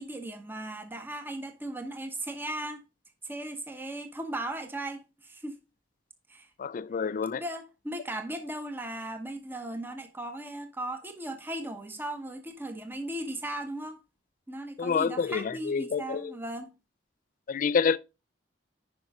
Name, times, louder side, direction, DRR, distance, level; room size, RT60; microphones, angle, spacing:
voice 1, 0.0-2.8 3.2-5.6 6.3-6.5 7.3-14.0 14.5-16.7, right 1 dB, 10° right, 1.1 m, -37 dB
voice 2, 6.6-7.4 14.8-16.3 17.5-18.0, left 6 dB, 45° left, 0.3 m, -28 dB
10.0 x 5.3 x 3.6 m
head